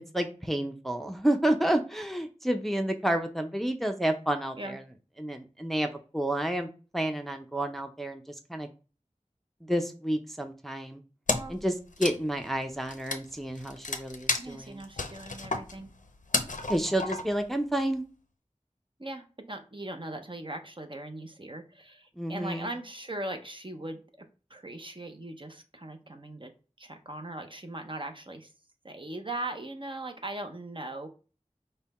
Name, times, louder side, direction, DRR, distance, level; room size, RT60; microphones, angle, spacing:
voice 1, 0.1-4.8 5.2-6.7 6.9-8.7 9.6-11.0 11.5-11.7 12.0-14.8 16.7-18.0 22.2-22.7, right 1 dB, ahead, 5 dB, 0.5 m, -30 dB
Wood, 11.3-11.6 11.9-17.5, left 3 dB, 85° left, 0.6 m, -32 dB
voice 2, 14.4-15.9 19.0-24.0 24.5-26.5 26.8-28.5 28.8-31.1, right 2 dB, 40° right, 5 dB, 0.7 m, -39 dB
5.5 x 2.2 x 4.1 m, 0.35 s
wide cardioid pair, 40°, 13 cm